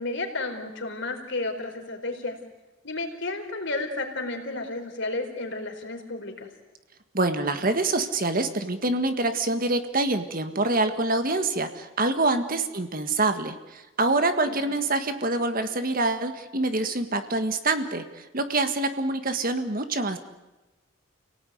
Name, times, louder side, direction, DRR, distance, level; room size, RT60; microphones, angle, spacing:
voice 1, 0.0-2.4 2.8-6.5 12.5-12.6 14.4-14.6, left 2 dB, 60° left, 4 dB, 4.4 m, -32 dB
voice 2, 7.1-20.2, right 2 dB, 40° right, 8 dB, 1.7 m, -26 dB
30.0 x 18.0 x 9.4 m, 1.1 s
head